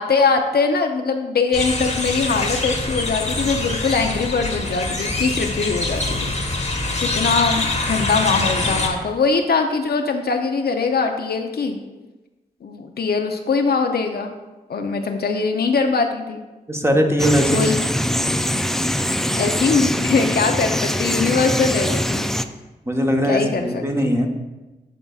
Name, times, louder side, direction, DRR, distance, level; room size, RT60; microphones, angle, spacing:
voice 1, 0.0-6.3 7.0-11.8 12.6-14.3 14.7-16.4 17.5-17.7 19.3-22.3 23.3-23.8, left 4 dB, 60° left, 4 dB, 0.6 m, -21 dB
sound 1, 1.5-8.9, left 2 dB, 35° left, 1.3 m, -24 dB
voice 2, 16.7-17.7 22.9-24.3, equal, 15° right, 2 dB, 1.1 m, -20 dB
sound 2, 17.2-22.5, equal, ahead, 0.3 m, -22 dB
11.0 x 3.9 x 2.4 m, 1.1 s
supercardioid pair, 40°, 19 cm